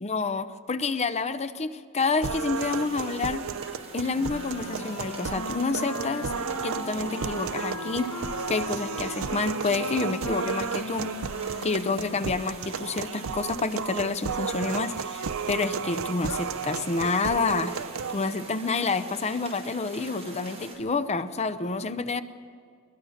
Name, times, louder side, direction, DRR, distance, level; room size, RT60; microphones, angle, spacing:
voice 1, 0.0-3.5 3.9-6.3 6.6-8.1 8.5-11.1 11.6-17.7 18.1-22.2, left 4 dB, 30° left, 11 dB, 0.7 m, -28 dB
sound 1, 2.2-18.2, right 6 dB, 65° right, 0.6 m, -33 dB
sound 2, 2.5-20.8, right 2 dB, 30° right, 5.5 m, -45 dB
Wind instrument woodwind instrument, 4.1-12.8, left 3 dB, 90° left, 1.1 m, -39 dB
22.0 x 21.0 x 6.5 m, 2.2 s
head